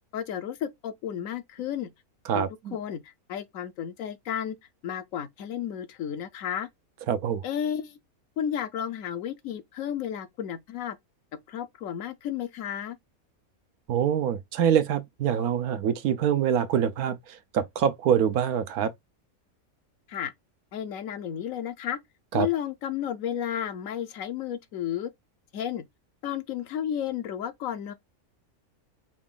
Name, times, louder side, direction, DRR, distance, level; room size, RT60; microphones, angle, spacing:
voice 1, 0.1-1.9 2.3-2.4 2.7-4.6 4.8-6.7 7.4-8.0 8.4-11.0 11.5-13.0 20.1-20.3 20.7-22.0 22.3-25.1 25.5-25.8 26.2-27.9, left 9 dB, 70° left, 1.0 m, -32 dB
voice 2, 2.3-2.8 7.1-7.4 13.9-18.9 22.3-22.5, right 9 dB, 85° right, 1.2 m, -25 dB
5.0 x 2.4 x 3.7 m
omnidirectional pair, 1.5 m